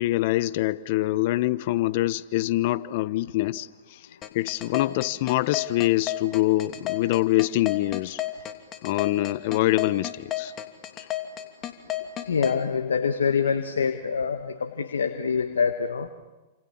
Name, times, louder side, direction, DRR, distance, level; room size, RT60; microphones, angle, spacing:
voice 1, 0.0-4.0 4.3-8.2 8.8-10.5 11.0-11.1, left 17 dB, 55° left, 17 dB, 1.0 m, -25 dB
sound 1, 4.2-12.6, left 14 dB, 35° left, 2.8 m, -31 dB
voice 2, 12.2-16.1, left 6 dB, 85° left, 7 dB, 1.6 m, -25 dB
29.5 x 27.5 x 7.3 m, 1.1 s
hypercardioid pair, 115°, 0 cm